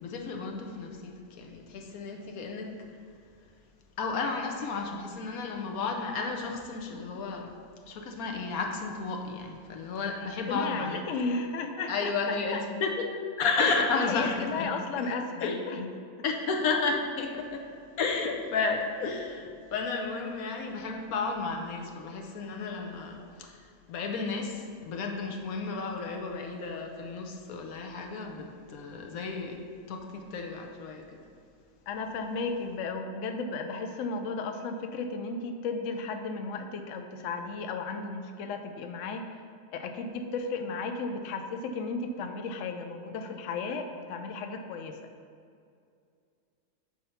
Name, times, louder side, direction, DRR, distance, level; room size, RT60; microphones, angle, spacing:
voice 1, 0.0-2.7 4.0-7.5 7.9-11.0 11.9-13.1 13.4-14.7 15.0-15.1 15.4-15.6 16.2-17.6 18.0-29.6 29.9-31.2, left 4 dB, 85° left, 3 dB, 1.2 m, -32 dB
voice 2, 10.5-12.6 13.9-15.9 16.2-16.3 31.9-39.2 39.7-45.0, left 4 dB, 70° left, 6 dB, 0.8 m, -34 dB
6.5 x 4.4 x 5.5 m, 2.3 s
omnidirectional pair, 1.5 m